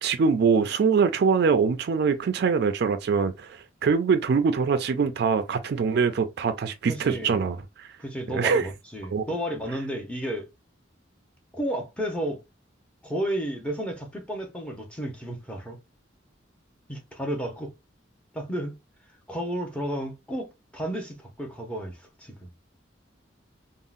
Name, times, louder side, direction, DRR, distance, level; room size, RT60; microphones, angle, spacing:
voice 1, 0.0-8.0 8.3-8.7 9.1-9.2, right 5 dB, 55° right, 0.3 m, -23 dB
voice 2, 6.9-7.5 8.0-10.5 11.5-12.4 13.0-15.8 16.9-17.7 18.3-18.8 19.3-22.5, right 1 dB, 5° left, 0.6 m, -32 dB
3.6 x 2.0 x 2.4 m
head